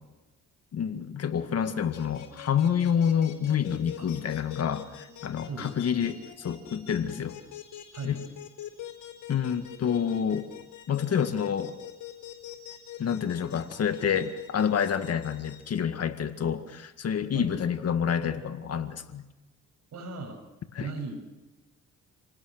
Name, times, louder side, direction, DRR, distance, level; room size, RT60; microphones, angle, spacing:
voice 1, 0.7-7.4 8.0-8.2 9.3-10.5 10.9-11.8 13.0-19.2 20.7-20.9, left 8 dB, 55° left, 9 dB, 2.0 m, -28 dB
sound 1, 1.9-15.6, left 12 dB, 85° left, 4.5 m, -43 dB
voice 2, 19.9-20.4 20.8-21.1, right 4 dB, 60° right, 4 dB, 7.3 m, -37 dB
28.5 x 18.5 x 6.7 m, 1.1 s
cardioid pair, 90°, 30 cm